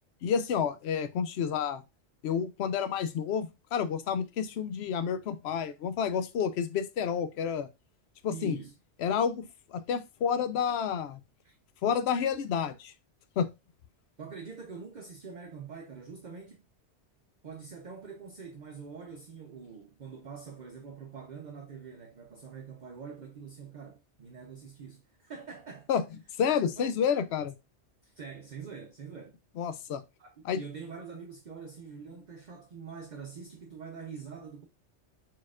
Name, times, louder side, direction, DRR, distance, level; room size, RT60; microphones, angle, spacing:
voice 1, 0.2-1.8 2.2-7.7 8.2-8.6 9.0-11.2 11.8-12.9 13.4-13.5 25.9-26.0 26.4-27.5 29.6-30.0 30.4-30.6, left 7 dB, 70° left, 0.8 m, -30 dB
voice 2, 8.3-8.7 11.4-11.6 14.2-16.7 17.4-25.9 26.8-26.9 28.0-29.3 30.2-34.6, right 5 dB, 50° right, 0.7 m, -45 dB
4.3 x 4.2 x 2.4 m
omnidirectional pair, 1.2 m